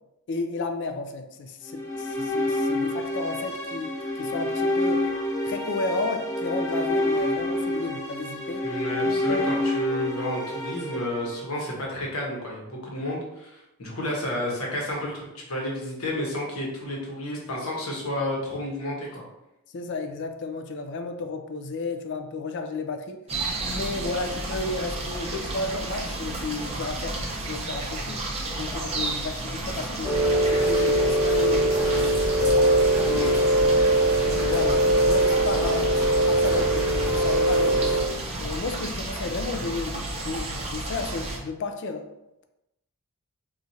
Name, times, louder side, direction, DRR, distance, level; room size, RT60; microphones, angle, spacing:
voice 1, 0.3-3.9 4.2-5.1 5.4-8.6 9.0-9.5 19.7-23.2 23.6-27.2 27.5-28.3 28.6-32.5 33.0-33.3 34.2-38.0 38.4-42.1, left 3 dB, 55° left, 7 dB, 0.4 m, -33 dB
sound 1, 1.7-11.9, left 1 dB, 15° left, 0.7 m, -28 dB
voice 2, 8.6-19.2 33.1-33.4, left 1 dB, 75° left, -2 dB, 1.0 m, -31 dB
sound 2, 23.3-41.4, right 2 dB, 30° right, 0.5 m, -32 dB
Rain, 30.0-38.0, right 1 dB, 10° right, 0.9 m, -21 dB
4.2 x 2.4 x 2.7 m, 0.89 s
head